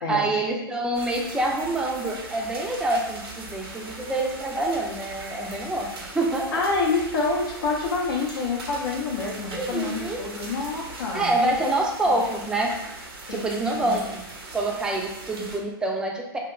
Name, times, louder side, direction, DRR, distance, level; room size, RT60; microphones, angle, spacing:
voice 1, 0.1-5.9 6.1-6.6 9.5-10.2 11.1-12.8 13.3-14.3 14.5-16.4, right 2 dB, 5° right, 0 dB, 0.4 m, -26 dB
sound 1, 0.9-15.6, right 2 dB, 75° right, 0.6 m, -40 dB
voice 2, 6.5-11.5 12.1-12.2 13.3-14.0, left 3 dB, 70° left, -2 dB, 0.6 m, -27 dB
2.7 x 2.2 x 2.3 m, 0.88 s
hypercardioid pair, 105°, 12 cm